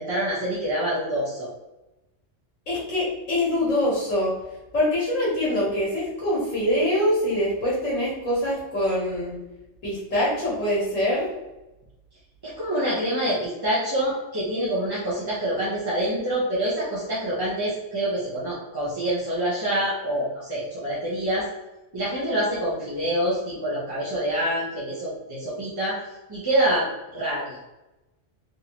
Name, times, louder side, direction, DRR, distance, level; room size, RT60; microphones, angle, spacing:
voice 1, 0.0-1.5 12.4-21.5 21.9-26.0 26.3-26.9 27.1-27.6, right 1 dB, 25° right, -9 dB, 0.6 m, -26 dB
voice 2, 2.7-4.3 4.7-9.4 9.8-11.3, left 1 dB, 90° left, -7 dB, 1.5 m, -24 dB
3.6 x 2.6 x 2.9 m, 1.0 s
omnidirectional pair, 1.3 m